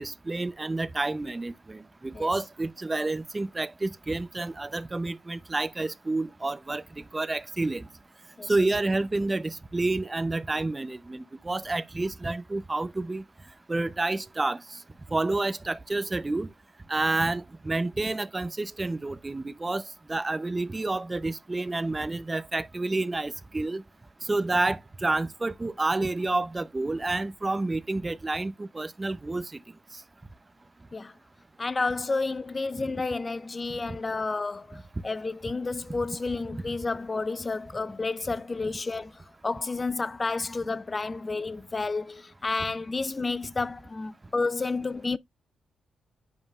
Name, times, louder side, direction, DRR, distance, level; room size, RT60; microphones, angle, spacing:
voice 1, 0.0-6.8 7.1-7.9 8.5-13.2 13.7-14.6 15.1-16.5 16.9-19.8 20.1-23.8 24.3-29.4, right 2 dB, 25° right, 0.6 m, -29 dB
voice 2, 31.6-45.2, left 3 dB, 30° left, 0.4 m, -31 dB
9.1 x 5.4 x 2.3 m
cardioid pair, 65°, 0 cm